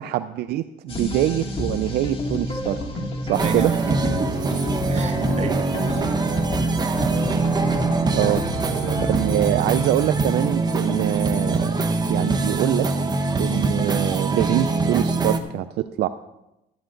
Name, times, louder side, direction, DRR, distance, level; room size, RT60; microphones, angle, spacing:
voice 1, 0.0-2.8 3.2-3.7 8.1-8.4 9.1-11.7 12.1-12.9 13.4-16.1, right 13 dB, 75° right, 12 dB, 0.5 m, -24 dB
sound 1, 0.9-9.5, left 1 dB, 35° left, 2.4 m, -30 dB
sound 2, 3.3-15.4, right 3 dB, 25° right, 1.0 m, -23 dB
voice 2, 3.4-4.3 4.9-6.1 7.2-7.6 8.1-9.3, right 5 dB, 40° right, 6 dB, 1.4 m, -33 dB
12.0 x 11.5 x 3.9 m, 0.90 s
cardioid pair, 110°, 17 cm